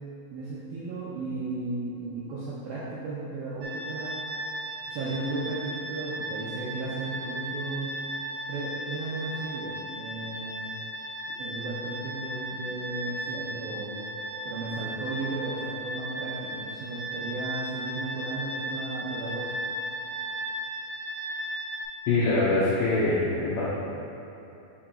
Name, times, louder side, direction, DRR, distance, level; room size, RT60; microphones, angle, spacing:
voice 1, 0.3-4.1 4.9-7.9 8.5-10.7 11.4-14.0 14.4-19.5 23.0-23.1, right 2 dB, 80° right, -8 dB, 2.2 m, -35 dB
sound 1, 3.6-21.8, right 1 dB, 65° right, 2.3 m, -36 dB
voice 2, 22.1-23.6, left 2 dB, 80° left, -9 dB, 2.1 m, -24 dB
6.5 x 4.7 x 4.3 m, 3.0 s
omnidirectional pair, 5.3 m